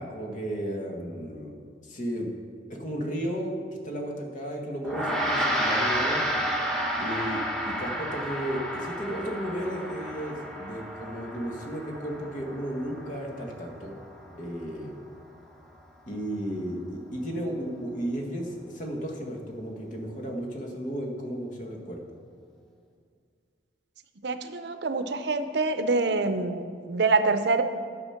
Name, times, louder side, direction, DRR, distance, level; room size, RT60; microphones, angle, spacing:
voice 1, 0.0-2.3 2.7-6.2 6.9-13.9 14.3-14.9 16.1-22.0, equal, 45° left, 1 dB, 1.6 m, -34 dB
Gong, 4.8-14.5, equal, 5° left, 1.2 m, -31 dB
voice 2, 24.2-27.6, right 3 dB, 70° right, 10 dB, 0.7 m, -25 dB
11.0 x 7.2 x 5.8 m, 2.2 s
head